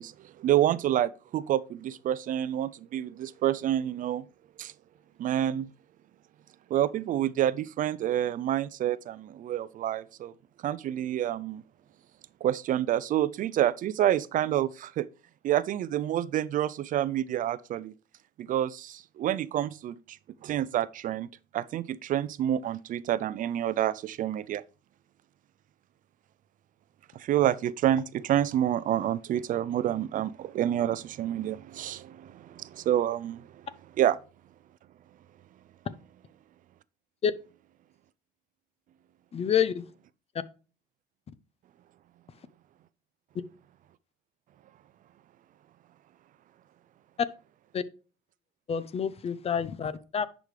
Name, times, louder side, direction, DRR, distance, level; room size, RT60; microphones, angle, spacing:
voice 1, 0.0-4.3 4.6-4.7 5.2-5.7 6.7-10.3 10.6-11.6 12.4-15.1 15.4-17.9 18.4-20.2 20.4-21.3 21.5-24.6 27.1-33.6 34.0-34.2, right 11 dB, 50° right, 0.4 m, -28 dB
voice 2, 39.3-39.8 47.7-47.8 48.7-50.3, left 7 dB, 35° left, 0.6 m, -28 dB
10.0 x 5.1 x 3.2 m
cardioid pair, 110°, 17 cm